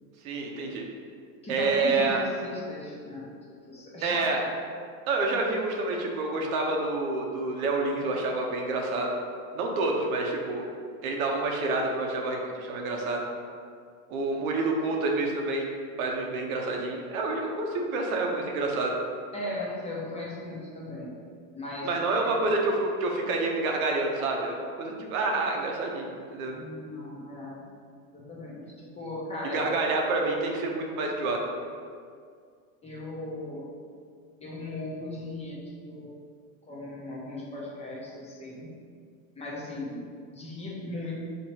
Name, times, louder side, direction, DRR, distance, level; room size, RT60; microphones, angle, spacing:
voice 1, 0.2-0.8 1.5-2.2 4.0-4.4 5.1-9.2 9.5-10.7 11.0-13.2 14.1-15.7 16.0-18.9 21.8-26.6 29.5-31.4, right 3 dB, 85° right, 1 dB, 0.8 m, -28 dB
voice 2, 1.4-3.3 3.7-4.5 19.3-21.1 21.5-22.3 26.5-27.6 28.1-29.7 32.8-33.7 34.4-35.6 35.8-36.1 36.7-38.7 39.4-41.2, left 2 dB, 15° left, -5 dB, 0.7 m, -37 dB
3.0 x 2.8 x 4.4 m, 2.2 s
supercardioid pair, 130°, 42 cm